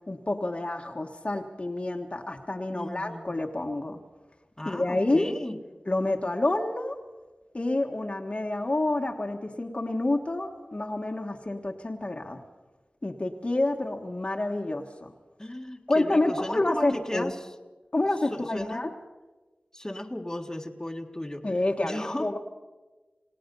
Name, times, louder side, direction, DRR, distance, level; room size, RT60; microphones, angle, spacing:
voice 1, 0.1-4.0 4.6-5.3 5.9-6.9 7.5-12.4 13.0-15.1 15.9-17.3 17.9-18.9 21.4-22.4, left 2 dB, 40° left, 3 dB, 1.5 m, -28 dB
voice 2, 2.7-3.3 4.6-5.6 15.4-17.5 18.3-18.8 19.7-21.4 21.8-22.3, left 1 dB, 20° left, 3 dB, 1.6 m, -35 dB
28.5 x 17.5 x 5.5 m, 1.2 s
wide cardioid pair, 55°, 3 cm